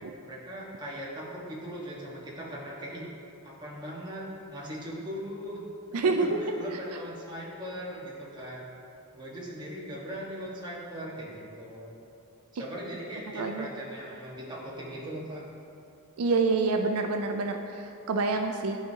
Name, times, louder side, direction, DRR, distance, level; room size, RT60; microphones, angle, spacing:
voice 1, 0.0-3.0 3.4-4.2 4.5-5.6 6.2-8.7 9.1-11.9 12.5-15.4, equal, 20° right, -5 dB, 1.3 m, -39 dB
voice 2, 5.9-6.4 13.3-13.7 16.2-18.8, right 3 dB, 80° right, 4 dB, 0.4 m, -27 dB
11.5 x 5.0 x 2.8 m, 2.7 s
head